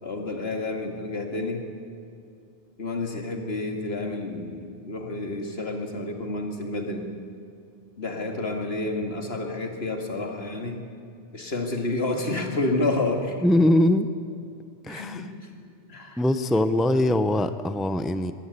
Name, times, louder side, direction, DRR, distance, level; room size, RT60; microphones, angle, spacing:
voice 1, 0.0-1.7 2.8-7.1 8.0-10.8 11.3-13.4 14.9-15.5 15.9-16.2 16.5-16.6, left 2 dB, 70° left, 4 dB, 2.5 m, -29 dB
voice 2, 13.4-14.1 14.8-15.3 16.2-18.3, left 1 dB, ahead, 11 dB, 0.6 m, -22 dB
21.0 x 16.5 x 8.3 m, 2.5 s
omnidirectional pair, 1.1 m